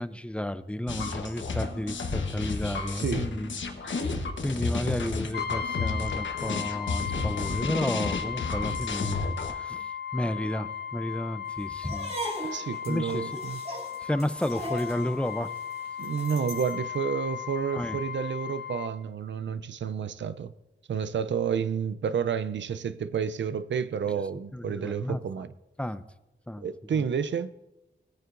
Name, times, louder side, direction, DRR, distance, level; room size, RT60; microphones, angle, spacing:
voice 1, 0.0-3.5 3.8-13.4 14.0-15.5 17.7-18.0 24.5-25.2 25.8-26.0 26.5-26.7 26.9-27.0, left 1 dB, 5° left, 0.5 m, -32 dB
sound 1, 0.9-9.5, left 4 dB, 80° left, 1.0 m, -32 dB
voice 2, 3.0-3.3 12.5-13.6 16.0-20.5 20.9-25.5 26.6-27.5, right 7 dB, 75° right, 0.5 m, -30 dB
Brass instrument, 5.3-19.0, left 8 dB, 60° left, 0.6 m, -36 dB
sound 2, 11.8-16.8, right 1 dB, 35° right, 2.7 m, -39 dB
17.5 x 9.2 x 2.5 m
wide cardioid pair, 90°, 19 cm